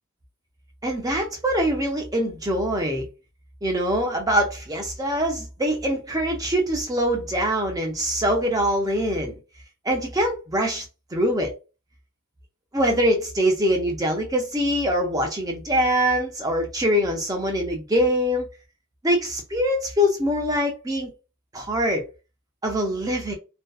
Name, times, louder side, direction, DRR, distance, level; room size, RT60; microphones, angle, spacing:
voice 1, 0.8-3.1 3.6-9.3 9.9-10.8 11.1-11.5 12.7-18.5 19.0-21.1 21.5-22.0 22.6-23.3, equal, 15° right, 0.5 m, -23 dB
2.5 x 2.2 x 2.2 m
head